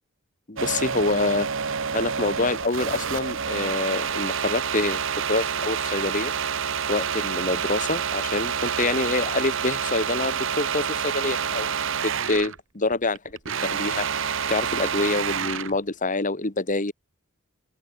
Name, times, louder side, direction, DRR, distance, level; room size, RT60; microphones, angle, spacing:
voice 1, 0.5-1.5 1.9-5.0 5.3-6.3 6.9-11.7 12.0-16.9, left 3 dB, 35° left, 1.6 m, -26 dB
sound 1, 0.6-12.6 12.9-15.8, right 7 dB, 60° right, 1.1 m, -28 dB
open air
head